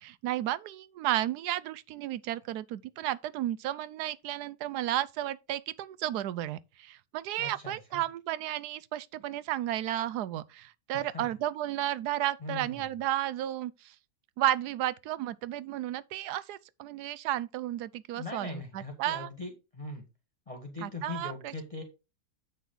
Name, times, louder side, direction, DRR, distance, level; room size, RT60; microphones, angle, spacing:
voice 1, 0.0-13.9 14.4-19.3 20.8-21.5, right 13 dB, 85° right, 1.2 m, -33 dB
voice 2, 7.4-8.0 10.9-11.3 12.4-12.9 18.1-20.0 20.5-21.8, left 3 dB, 20° left, 1.6 m, -41 dB
7.9 x 6.4 x 3.9 m
omnidirectional pair, 1.7 m